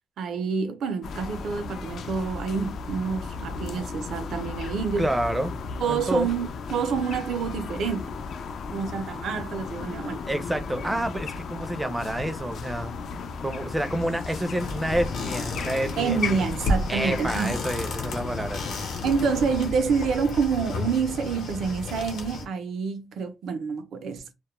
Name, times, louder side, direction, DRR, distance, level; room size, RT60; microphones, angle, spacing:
voice 1, 0.2-5.1 5.8-8.0 8.7-10.2 16.0-17.6 19.0-24.3, right 6 dB, 70° right, 0.5 m, -28 dB
sound 1, 1.0-19.7, left 4 dB, 65° left, 0.4 m, -35 dB
voice 2, 5.0-5.5 5.9-6.3 10.3-13.0 13.4-16.5 16.9-18.8, right 1 dB, 10° right, 0.4 m, -28 dB
sound 2, 14.6-22.5, left 2 dB, 80° left, 0.8 m, -32 dB
2.2 x 2.1 x 2.9 m
cardioid pair, 105°, 0 cm